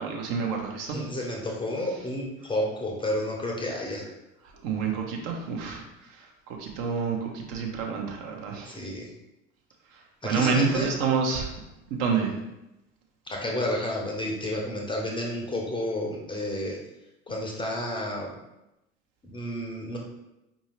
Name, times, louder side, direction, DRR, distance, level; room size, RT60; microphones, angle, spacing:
voice 1, 0.0-1.0 4.6-5.8 6.6-8.8 10.2-11.5 11.9-12.4, right 5 dB, 50° right, 1 dB, 0.8 m, -28 dB
voice 2, 0.9-4.0 8.7-9.1 10.2-10.9 13.3-16.8 17.3-18.3 19.2-20.0, left 1 dB, 10° left, -1 dB, 0.6 m, -31 dB
4.7 x 2.7 x 3.0 m, 0.92 s
figure-of-eight pair, 65°, 40 cm